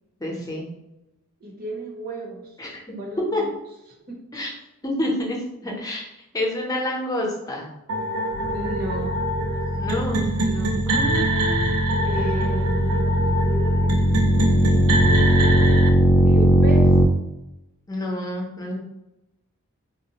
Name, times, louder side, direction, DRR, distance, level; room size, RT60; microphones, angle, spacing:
voice 1, 0.2-0.6 2.6-2.9 3.3-3.4 4.3-4.5 5.0-6.1 6.3-7.7 9.6-10.3 10.8-11.7 17.9-18.8, left 1 dB, 15° left, -2 dB, 0.7 m, -28 dB
voice 2, 1.4-2.6 3.0-3.5 4.1-4.2 8.4-9.2 10.4-10.9 12.0-14.1 14.8-16.9, right 1 dB, 45° right, -1 dB, 0.7 m, -34 dB
sound 1, 7.9-15.9, right 2 dB, 90° right, 0.4 m, -25 dB
sound 2, 8.3-17.0, equal, 80° left, 0.4 m, -20 dB
3.8 x 2.0 x 2.8 m, 0.94 s
head